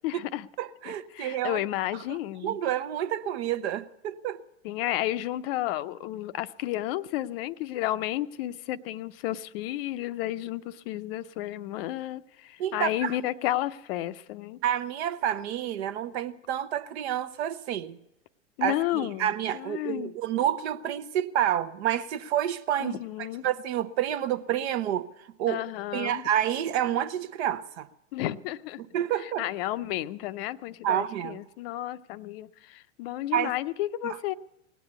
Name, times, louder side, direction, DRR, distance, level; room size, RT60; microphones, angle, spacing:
voice 1, 0.0-0.5 0.9-2.6 4.6-14.6 18.6-20.1 22.8-23.5 25.5-26.2 28.1-28.8 29.1-34.3, left 14 dB, 50° left, 0.6 m, -32 dB
voice 2, 0.6-1.6 2.1-2.2 2.4-4.4 12.6-13.2 14.6-18.0 18.6-25.6 25.9-27.9 28.9-29.4 30.8-31.4 33.3-33.5 34.0-34.2, right 11 dB, 60° right, 0.9 m, -29 dB
18.5 x 8.2 x 8.1 m
hypercardioid pair, 110°, 37 cm